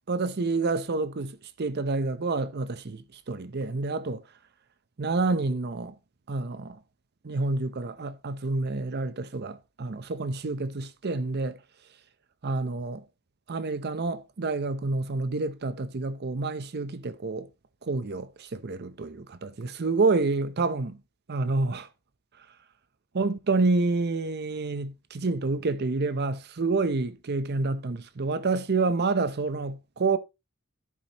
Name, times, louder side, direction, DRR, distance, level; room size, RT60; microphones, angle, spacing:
voice 1, 0.1-3.0 3.3-4.2 5.0-5.9 6.3-6.8 7.2-11.6 12.4-13.0 13.5-17.5 17.9-21.0 21.3-21.9 23.1-30.2, right 3 dB, 45° right, 0.6 m, -28 dB
11.0 x 8.5 x 2.9 m
head